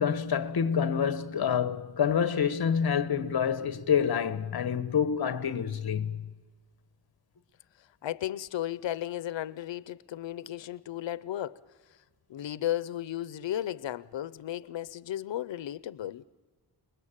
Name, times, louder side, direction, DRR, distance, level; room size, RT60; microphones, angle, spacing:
voice 1, 0.0-6.3, left 7 dB, 60° left, 1.2 m, -27 dB
voice 2, 8.0-11.6 12.3-16.2, left 12 dB, 90° left, 0.7 m, -34 dB
29.5 x 20.5 x 8.9 m
wide cardioid pair, 170°, 43 cm